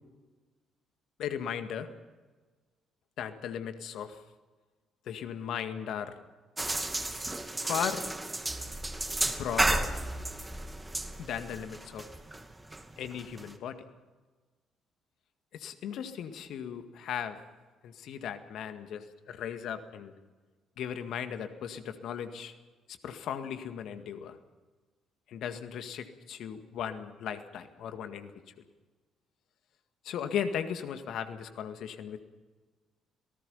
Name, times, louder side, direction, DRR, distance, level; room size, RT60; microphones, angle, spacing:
voice 1, 1.2-1.9 3.2-4.2 5.1-6.1 7.6-8.0 9.2-9.9 11.2-12.1 13.0-13.8 15.5-17.4 17.8-20.1 20.8-22.5 23.0-24.4 25.3-28.3 30.0-32.3, left 8 dB, 65° left, 8 dB, 1.9 m, -37 dB
sound 1, 6.6-13.5, right 2 dB, 20° right, 2.4 m, -33 dB
27.0 x 19.0 x 5.6 m, 1.3 s
hypercardioid pair, 45°, 0 cm